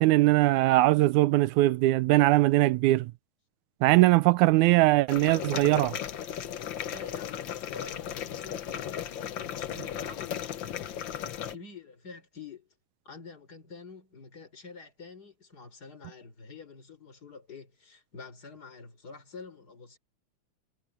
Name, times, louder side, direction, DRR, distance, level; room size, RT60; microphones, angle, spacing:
voice 1, 0.0-3.1 3.8-6.0, right 18 dB, 80° right, 1.9 m, -21 dB
sound 1, 5.1-11.6, left 10 dB, 80° left, 1.0 m, -36 dB
voice 2, 6.8-12.7 13.1-20.0, left 4 dB, 30° left, 5.2 m, -48 dB
omnidirectional pair, 3.5 m